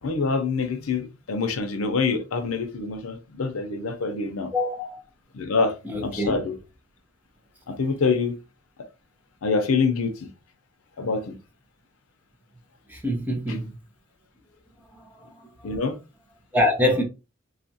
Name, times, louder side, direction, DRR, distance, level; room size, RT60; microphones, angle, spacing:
voice 1, 0.0-4.5 5.3-5.7 6.0-6.6 7.7-8.4 9.4-10.3 11.0-11.3 13.5-13.6 15.6-16.0, left 4 dB, 85° left, 0.6 m, -25 dB
voice 2, 4.5-5.0 5.8-6.4 12.9-13.7 15.0-15.1 16.5-17.0, left 1 dB, 10° right, 0.7 m, -24 dB
2.7 x 2.4 x 2.7 m
head